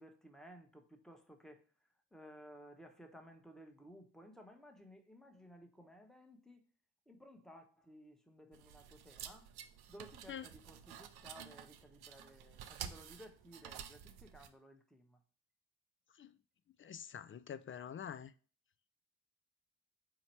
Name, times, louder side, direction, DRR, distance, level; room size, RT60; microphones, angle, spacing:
voice 1, 0.0-1.6 2.1-6.6 7.1-9.5 9.9-15.2, equal, ahead, 1.0 m, -57 dB
sound 1, 8.5-14.5, right 9 dB, 70° right, 0.6 m, -51 dB
voice 2, 16.8-18.3, left 8 dB, 35° left, 0.4 m, -46 dB
4.2 x 2.9 x 4.3 m
hypercardioid pair, 40°, 40 cm